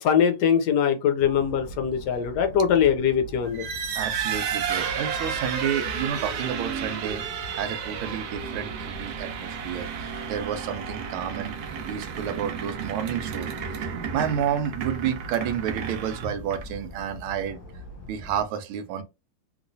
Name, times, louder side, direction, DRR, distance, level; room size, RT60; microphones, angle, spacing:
voice 1, 0.0-3.7, left 8 dB, 70° left, 1.0 m, -22 dB
sound 1, 1.2-18.4, equal, 45° left, 1.2 m, -43 dB
sound 2, 3.4-16.9, right 7 dB, 65° right, 1.1 m, -32 dB
voice 2, 3.9-7.2 7.6-11.5 11.9-13.5 14.1-17.6 18.1-19.0, right 9 dB, 90° right, 1.5 m, -30 dB
3.2 x 3.0 x 2.6 m
omnidirectional pair, 2.2 m